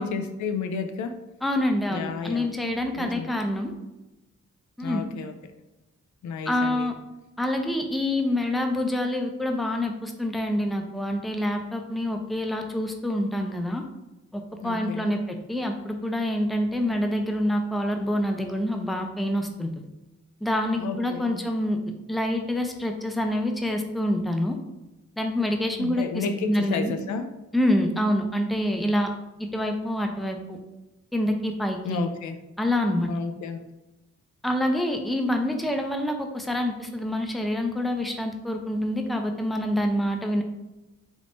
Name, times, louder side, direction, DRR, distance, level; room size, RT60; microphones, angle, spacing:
voice 1, 0.0-1.2 1.9-2.5 3.0-3.4 4.8-5.3 6.2-6.9 14.6-15.2 20.7-21.4 25.7-27.3 31.8-32.4 33.1-33.6, left 5 dB, 75° left, 7 dB, 0.5 m, -32 dB
voice 2, 1.4-3.7 4.8-5.1 6.5-6.9 7.4-13.8 14.3-19.7 20.4-21.8 22.1-24.6 25.2-26.9 27.5-29.1 29.4-30.6 31.1-32.0 32.6-33.1 34.4-40.4, left 1 dB, ahead, 4 dB, 0.5 m, -26 dB
3.5 x 3.1 x 2.5 m, 1.0 s
cardioid pair, 60°, 29 cm